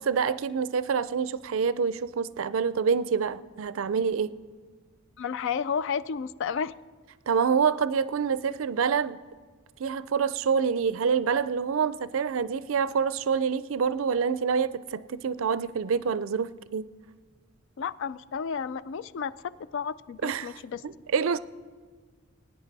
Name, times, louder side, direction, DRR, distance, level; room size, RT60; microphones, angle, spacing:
voice 1, 0.0-4.3 7.3-9.2 9.8-16.9 20.2-21.4, right 6 dB, 70° right, 16 dB, 0.4 m, -27 dB
voice 2, 5.2-6.7 17.8-20.8, left 6 dB, 60° left, 17 dB, 0.3 m, -32 dB
19.5 x 9.6 x 4.1 m, 1.5 s
head